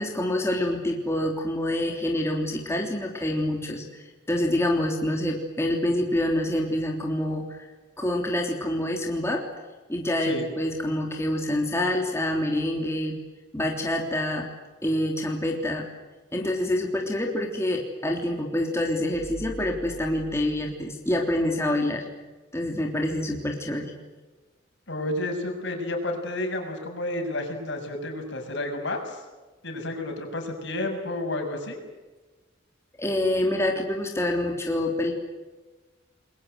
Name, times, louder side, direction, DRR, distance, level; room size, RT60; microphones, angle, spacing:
voice 1, 0.0-7.7 8.0-9.4 9.9-13.2 13.5-14.5 14.8-15.9 16.3-22.1 22.5-23.9 33.0-35.1, left 1 dB, 15° left, 1 dB, 3.3 m, -26 dB
voice 2, 24.9-29.2 29.6-31.8, left 1 dB, 65° left, 4 dB, 7.0 m, -31 dB
29.5 x 22.0 x 8.1 m, 1.2 s
head